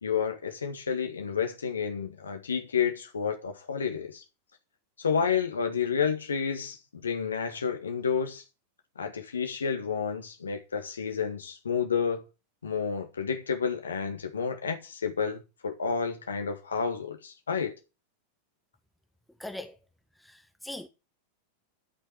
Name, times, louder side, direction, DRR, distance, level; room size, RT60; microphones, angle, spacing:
voice 1, 0.0-4.2 5.0-8.4 8.9-12.2 12.6-17.7, left 6 dB, 70° left, 1.7 m, -30 dB
voice 2, 19.4-19.8 20.2-20.9, left 1 dB, 5° left, 1.2 m, -40 dB
13.0 x 6.1 x 7.5 m
figure-of-eight pair, 90°, 0 cm